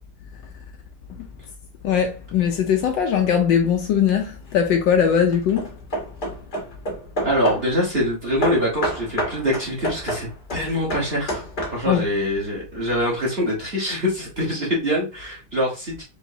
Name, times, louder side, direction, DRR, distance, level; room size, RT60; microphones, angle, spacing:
voice 1, 1.8-5.8 10.6-10.7 11.8-12.1, left 8 dB, 70° left, 1.2 m, -20 dB
Hammer / Wood, 4.2-4.7 5.3-7.8 8.4-12.1, right 1 dB, 35° left, 0.8 m, -29 dB
voice 2, 7.2-11.4 11.7-16.0, equal, 35° right, 1.3 m, -24 dB
4.9 x 3.0 x 2.7 m
omnidirectional pair, 2.3 m